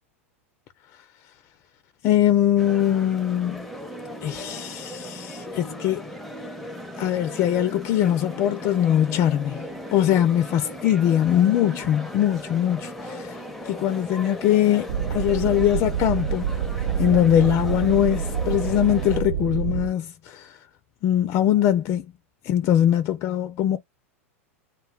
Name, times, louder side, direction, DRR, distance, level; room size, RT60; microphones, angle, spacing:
voice 1, 2.0-3.7 4.2-6.1 7.0-16.5 17.0-20.6 21.0-22.1 22.4-23.8, left 11 dB, 40° left, 0.4 m, -22 dB
sound 1, 2.6-19.2, equal, 5° left, 0.7 m, -37 dB
sound 2, 14.9-19.9, right 8 dB, 70° right, 0.3 m, -27 dB
2.2 x 2.1 x 3.4 m
hypercardioid pair, 95°, 8 cm